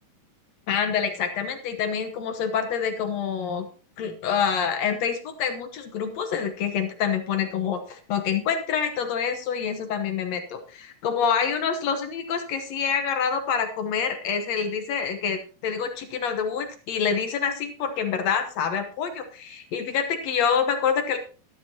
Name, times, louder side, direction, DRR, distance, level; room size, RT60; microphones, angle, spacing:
voice 1, 0.7-3.7 4.0-21.2, left 7 dB, 75° left, 7 dB, 1.6 m, -27 dB
13.5 x 12.0 x 2.8 m, 0.36 s
omnidirectional pair, 4.4 m